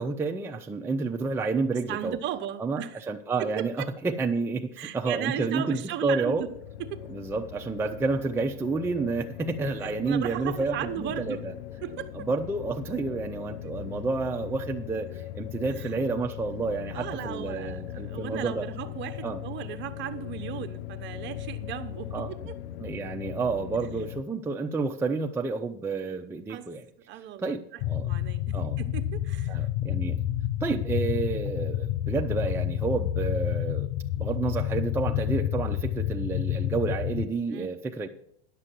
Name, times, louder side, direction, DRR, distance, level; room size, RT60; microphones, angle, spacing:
voice 1, 0.0-2.2 2.6-6.5 7.1-11.5 12.2-18.7 19.2-19.4 22.1-22.3 22.8-26.8 27.4-28.1 28.5-28.8 29.5-30.2 30.6-33.9 34.2-38.1, right 4 dB, 10° right, 2 dB, 0.5 m, -30 dB
voice 2, 1.9-3.1 3.4-3.9 4.8-6.5 6.8-7.1 9.8-11.4 11.8-12.3 13.6-13.7 15.8-15.9 16.9-17.8 18.1-22.6 26.5-26.7 27.1-29.6 30.3-30.5 37.5-37.8, right 11 dB, 40° right, 8 dB, 1.0 m, -36 dB
sound 1, 6.2-24.2, left 11 dB, 85° left, 0.7 m, -39 dB
sound 2, 27.8-37.3, left 12 dB, 45° left, 0.5 m, -29 dB
11.0 x 6.7 x 7.5 m, 0.70 s
supercardioid pair, 130°, 30 cm